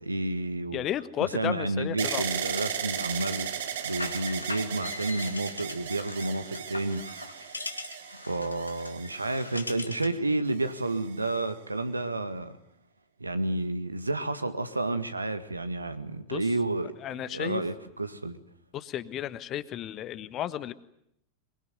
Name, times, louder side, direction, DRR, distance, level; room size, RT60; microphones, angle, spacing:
voice 1, 0.0-0.9 1.2-3.5 3.8-7.0 7.4-7.5 8.3-12.6 13.2-16.9 17.2-18.4, right 2 dB, 80° right, 10 dB, 1.8 m, -30 dB
voice 2, 0.7-2.2 16.3-16.4 17.0-17.6 18.7-20.7, left 11 dB, 30° left, 14 dB, 1.4 m, -33 dB
sound 1, 2.0-10.0 10.7-11.3, right 9 dB, 60° right, 2.1 m, -36 dB
sound 2, 3.8-10.2, left 2 dB, 80° left, 2.2 m, -41 dB
23.0 x 23.0 x 9.5 m, 0.75 s
figure-of-eight pair, 90°, 0 cm